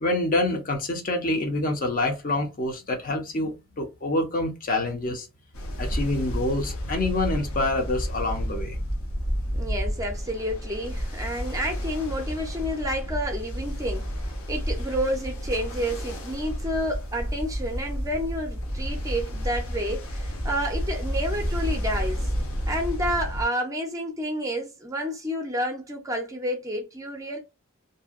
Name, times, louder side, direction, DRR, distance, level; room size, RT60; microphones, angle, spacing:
voice 1, 0.0-5.3 5.8-8.8, left 2 dB, 40° left, 0.6 m, -26 dB
Ocean, 5.5-23.4, equal, 70° left, 0.7 m, -31 dB
voice 2, 9.5-14.1 14.5-22.3 22.7-27.4, equal, 15° right, 0.5 m, -30 dB
2.6 x 2.1 x 2.4 m
head